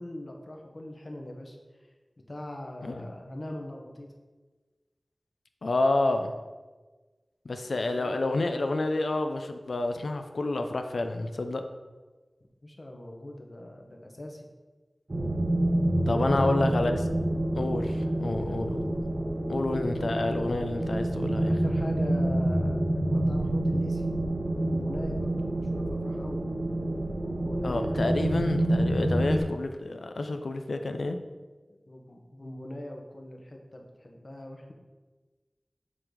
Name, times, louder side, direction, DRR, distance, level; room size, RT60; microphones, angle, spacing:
voice 1, 0.0-1.6 2.3-4.1 7.6-8.5 12.6-14.5 16.1-16.7 17.7-18.7 19.1-19.5 21.5-24.1 24.6-26.5 27.2-27.9 31.7-34.7, left 1 dB, 55° left, 1 dB, 1.2 m, -41 dB
voice 2, 5.6-6.3 7.4-11.6 16.1-17.0 17.6-19.1 19.5-21.5 27.6-31.2, left 2 dB, 85° left, 6 dB, 0.6 m, -29 dB
sound 1, 15.1-29.4, right 1 dB, 45° right, 1.0 m, -28 dB
7.4 x 3.9 x 4.9 m, 1.3 s
wide cardioid pair, 50°, 0 cm